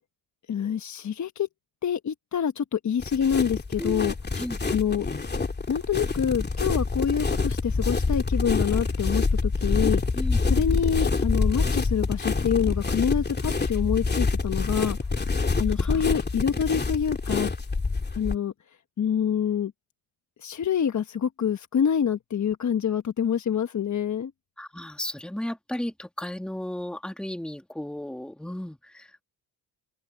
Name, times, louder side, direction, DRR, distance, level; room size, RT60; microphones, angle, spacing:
voice 1, 0.5-1.5 1.8-4.1 4.7-5.0 5.7-10.0 10.4-15.1 15.6-17.5 18.2-18.5 19.0-19.7 20.4-24.3, left 8 dB, 40° left, 1.3 m, -26 dB
sound 1, 3.0-18.4, left 4 dB, 20° left, 2.8 m, -26 dB
voice 2, 3.8-4.6 10.2-10.4 15.8-16.2 24.6-29.2, left 1 dB, ahead, 2.2 m, -34 dB
open air
supercardioid pair, 80°, 44 cm